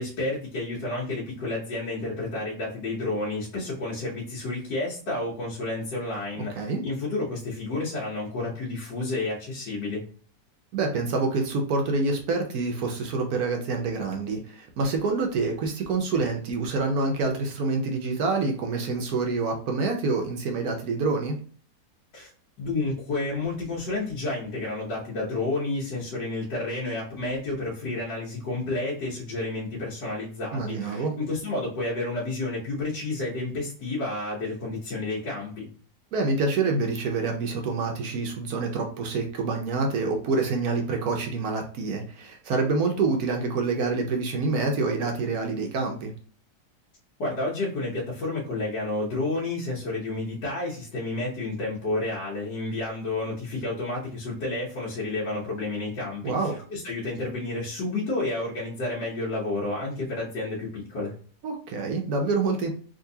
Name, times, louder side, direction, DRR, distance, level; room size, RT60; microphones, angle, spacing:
voice 1, 0.0-10.0 22.1-22.3 22.6-35.7 47.2-61.1, left 2 dB, 70° left, -7 dB, 1.6 m, -30 dB
voice 2, 10.7-21.4 30.5-31.1 36.1-46.1 56.2-56.5 61.4-62.7, right 3 dB, 65° right, 3 dB, 1.0 m, -27 dB
3.8 x 2.7 x 2.7 m, 0.43 s
omnidirectional pair, 1.9 m